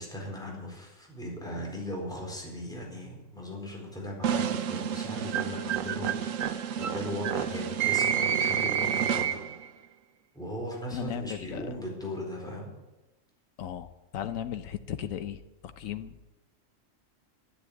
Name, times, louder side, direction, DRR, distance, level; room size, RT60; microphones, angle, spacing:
voice 1, 0.0-9.4 10.3-12.7, left 1 dB, 5° left, -2 dB, 4.3 m, -38 dB
sound 1, 4.2-9.7, right 8 dB, 85° right, 1.2 m, -29 dB
voice 2, 10.9-11.7 13.6-13.9 14.1-15.4 15.8-16.3, left 9 dB, 90° left, 9 dB, 1.2 m, -35 dB
12.0 x 11.0 x 8.4 m, 1.0 s
omnidirectional pair, 1.3 m